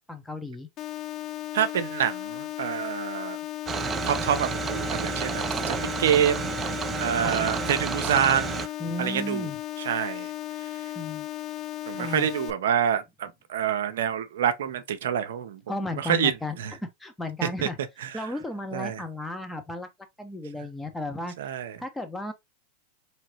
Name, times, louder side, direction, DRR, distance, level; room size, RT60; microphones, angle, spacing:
voice 1, 0.1-0.7 7.2-7.4 8.8-9.6 10.9-11.3 11.9-12.3 15.7-17.8 18.1-19.9 20.2-21.3 21.8-22.3, left 2 dB, 10° left, 1.0 m, -34 dB
sound 1, 0.8-12.5, left 14 dB, 40° left, 0.4 m, -35 dB
voice 2, 1.5-3.4 4.0-6.5 7.0-8.7 9.0-9.5 9.8-10.3 11.9-15.6 16.0-16.7 17.4-17.7 18.0-18.3 18.7-19.0 21.4-21.8, right 9 dB, 75° right, 0.6 m, -27 dB
sound 2, 3.7-8.7, right 6 dB, 25° right, 0.5 m, -30 dB
3.9 x 3.1 x 3.0 m
hypercardioid pair, 100°, 0 cm